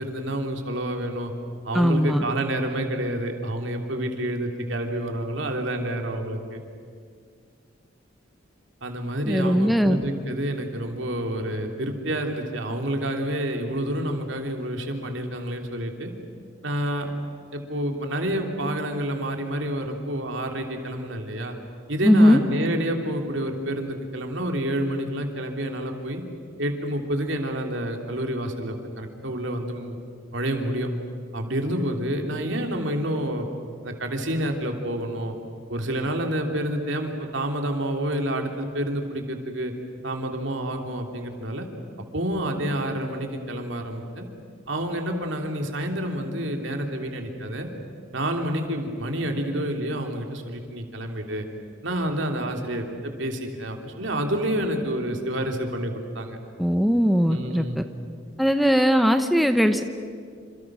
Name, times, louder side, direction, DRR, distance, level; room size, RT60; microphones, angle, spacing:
voice 1, 0.0-1.3 1.6-6.6 8.8-16.1 16.6-17.1 17.5-21.6 21.9-26.2 26.6-30.0 30.3-30.9 31.3-33.5 33.8-35.3 35.7-39.7 40.0-41.7 42.1-44.3 44.7-47.7 48.1-51.4 51.8-56.4 57.3-57.8, right 1 dB, 65° right, 3 dB, 3.1 m, -28 dB
voice 2, 1.7-2.2 9.3-10.0 22.0-22.4 56.6-57.8 58.4-59.8, equal, ahead, 7 dB, 0.8 m, -19 dB
28.5 x 27.5 x 6.2 m, 2.1 s
head